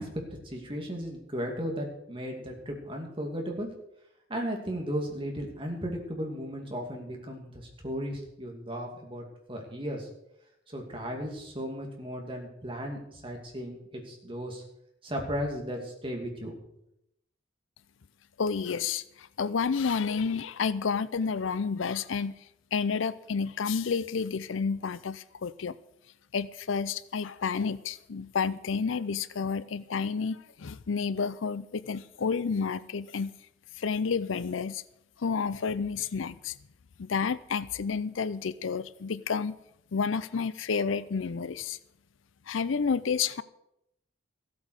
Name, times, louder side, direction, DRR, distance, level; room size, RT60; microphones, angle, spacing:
voice 1, 0.0-3.7 4.3-10.1 10.7-14.6 15.0-16.6, equal, 25° right, 2.4 m, -35 dB
voice 2, 18.4-22.4 22.7-25.8 26.3-33.3 33.8-34.8 35.2-36.5 37.0-39.5 39.9-41.8 42.5-43.4, left 5 dB, 80° left, 0.5 m, -30 dB
14.5 x 8.5 x 6.4 m
head